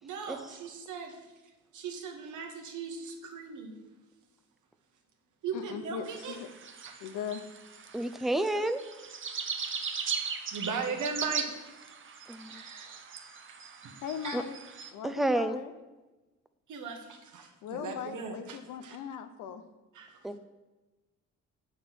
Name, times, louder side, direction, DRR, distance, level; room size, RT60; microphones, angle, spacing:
voice 1, 0.0-1.2 1.7-3.9 5.4-6.4 6.8-7.0 10.2-11.5 12.5-13.0 13.8-13.9 14.2-14.4 16.7-19.0 19.9-20.2, right 5 dB, 75° right, 3 dB, 1.6 m, -38 dB
voice 2, 5.5-6.5 7.0-7.4 14.0-14.6 14.9-15.7 17.6-19.6, left 8 dB, 90° left, 9 dB, 0.8 m, -39 dB
sound 1, 6.0-14.9, right 6 dB, 40° right, 1.0 m, -39 dB
voice 3, 7.9-8.8 12.3-12.5 14.3-14.4 15.0-15.6 20.2-20.4, right 1 dB, ahead, 9 dB, 0.6 m, -29 dB
8.1 x 6.7 x 6.2 m, 1.1 s
cardioid pair, 90°, 30 cm